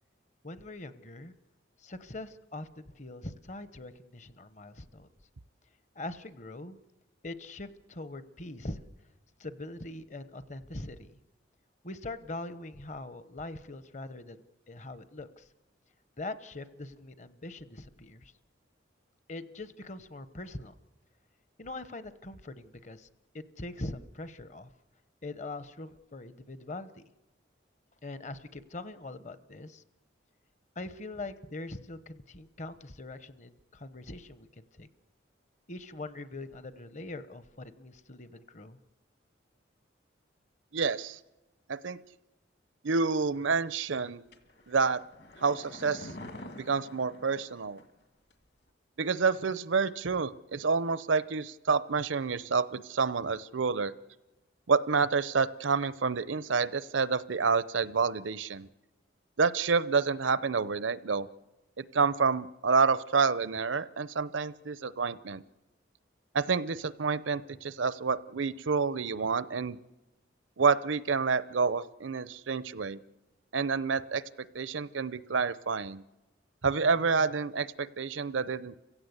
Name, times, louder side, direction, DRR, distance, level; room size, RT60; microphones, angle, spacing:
voice 1, 0.4-1.3 1.8-5.1 5.9-6.8 7.2-8.8 9.4-11.1 11.8-15.5 16.2-18.3 19.3-20.8 21.6-23.1 23.3-24.7 25.2-27.0 28.0-29.8 30.8-34.9 35.7-38.8, left 2 dB, 40° left, 13 dB, 0.9 m, -42 dB
voice 2, 40.7-41.2 41.7-42.0 42.8-44.2 44.7-45.0 45.4-46.1 46.6-47.8 49.0-53.9 54.7-58.7 59.4-61.3 61.8-65.4 66.3-69.8 70.6-73.0 73.5-76.0 76.6-78.7, right 5 dB, 85° right, 17 dB, 0.7 m, -28 dB
sound 1, 44.3-48.0 48.3-48.4, left 1 dB, 55° left, 1.9 m, -47 dB
29.0 x 16.0 x 8.1 m, 1.1 s
head